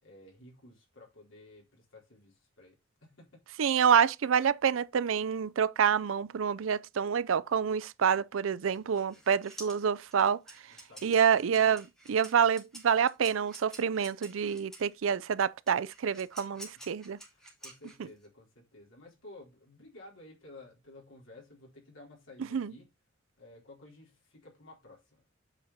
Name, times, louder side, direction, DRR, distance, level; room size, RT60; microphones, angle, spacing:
voice 1, 0.0-2.8 3.0-3.4 9.1-9.3 10.7-11.7 17.3-22.9 23.4-25.2, left 2 dB, 80° left, 4.4 m, -54 dB
voice 2, 3.6-10.4 11.0-17.2 22.5-22.7, right 7 dB, 80° right, 0.4 m, -27 dB
sound 1, 8.7-14.9 15.7-18.3, right 1 dB, 5° left, 2.6 m, -50 dB
8.2 x 5.2 x 4.1 m
head